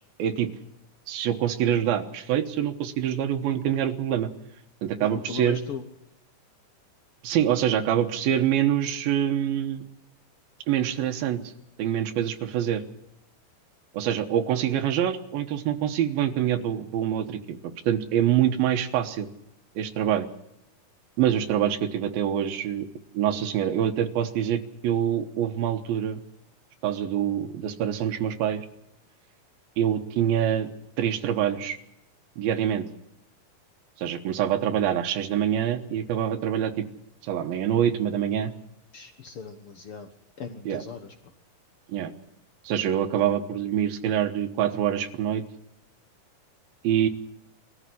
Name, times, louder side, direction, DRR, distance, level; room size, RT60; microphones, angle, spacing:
voice 1, 1.1-4.3 4.8-5.6 7.2-9.8 10.7-11.4 11.8-12.8 13.9-17.6 17.9-19.3 19.8-20.3 21.2-22.9 23.1-26.2 26.8-28.7 29.8-30.7 31.0-31.8 32.4-32.9 34.0-36.9 37.2-38.5 40.7-40.8 41.9-42.1 42.6-45.4 46.8-47.1, right 10 dB, 90° right, 6 dB, 3.0 m, -25 dB
voice 2, 5.0-5.8 38.9-40.1 40.4-41.1 43.2-43.3, left 5 dB, 70° left, 6 dB, 1.3 m, -38 dB
20.5 x 14.0 x 9.8 m, 0.83 s
omnidirectional pair, 4.2 m